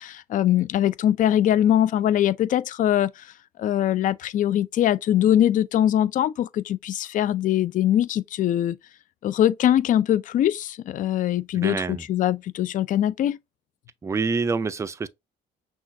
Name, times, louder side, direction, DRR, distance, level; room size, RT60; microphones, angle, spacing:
voice 1, 0.0-3.3 3.6-8.8 9.2-13.4, left 11 dB, 50° left, 0.4 m, -22 dB
voice 2, 11.5-12.0 14.0-15.1, right 4 dB, 15° right, 0.4 m, -26 dB
6.0 x 2.4 x 2.6 m
cardioid pair, 110°, 17 cm